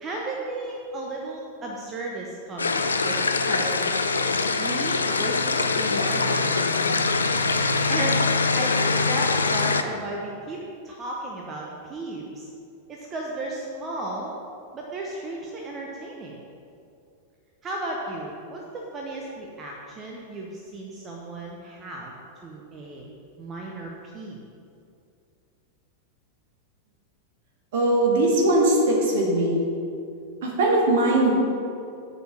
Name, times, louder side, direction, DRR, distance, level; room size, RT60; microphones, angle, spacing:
voice 1, 0.0-3.2 3.5-3.9 4.6-7.1 7.5-12.5 12.9-14.3 14.7-16.4 17.6-22.1 22.4-23.0 23.4-24.4, right 2 dB, 25° right, -1 dB, 0.8 m, -34 dB
sound 1, 2.6-9.8, left 4 dB, 75° left, 0.4 m, -23 dB
voice 2, 27.7-29.5 30.4-31.3, right 1 dB, 55° right, -2 dB, 1.7 m, -20 dB
6.6 x 4.6 x 6.4 m, 2.5 s
figure-of-eight pair, 90°, 0 cm